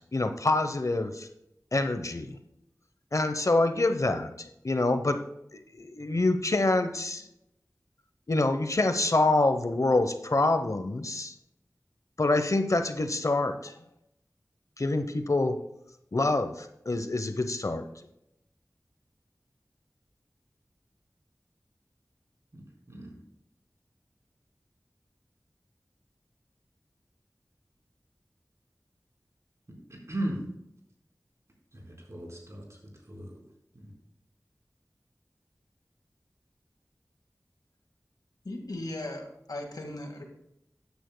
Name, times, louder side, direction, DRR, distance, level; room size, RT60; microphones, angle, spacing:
voice 1, 0.1-1.3 1.7-2.4 3.1-5.2 5.8-7.2 8.3-11.3 12.2-13.7 14.8-15.6 16.1-17.8, left 2 dB, 55° left, 8 dB, 0.8 m, -26 dB
voice 2, 22.5-23.1 29.7-30.4 31.7-32.8 33.1-33.3 33.7-33.9, right 1 dB, 50° right, -2 dB, 4.1 m, -37 dB
voice 3, 38.4-40.2, left 1 dB, 85° left, 3 dB, 1.8 m, -37 dB
14.0 x 9.7 x 2.2 m, 0.81 s
wide cardioid pair, 55°, 6 cm